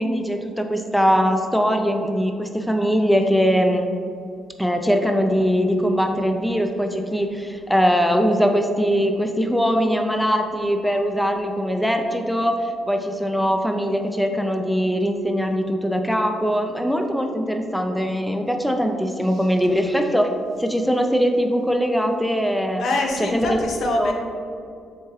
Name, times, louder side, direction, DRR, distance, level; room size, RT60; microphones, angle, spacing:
voice 1, 0.0-3.9 4.6-20.3 20.6-22.8 23.2-23.6 24.0-24.1, equal, 5° left, 4 dB, 0.4 m, -21 dB
voice 2, 22.8-24.1, left 2 dB, 70° left, 1 dB, 0.6 m, -24 dB
4.4 x 3.5 x 3.1 m, 2.4 s
supercardioid pair, 60°, 0 cm